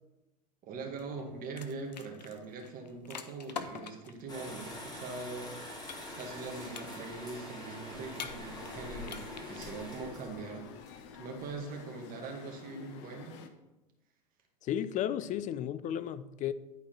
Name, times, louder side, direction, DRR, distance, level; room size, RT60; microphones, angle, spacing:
voice 1, 0.6-5.6 6.1-13.4, right 3 dB, 40° right, 2.0 m, -42 dB
sound 1, 1.0-4.2 5.9-6.4 6.7-7.3 8.1-8.7 9.0-9.6, left 6 dB, 85° left, 0.7 m, -44 dB
sound 2, 4.3-11.6, left 1 dB, 20° left, 2.7 m, -45 dB
sound 3, 8.4-13.5, left 7 dB, 55° left, 1.0 m, -50 dB
voice 2, 14.6-16.5, left 10 dB, 35° left, 0.5 m, -33 dB
11.0 x 4.6 x 4.5 m
hypercardioid pair, 85°, 21 cm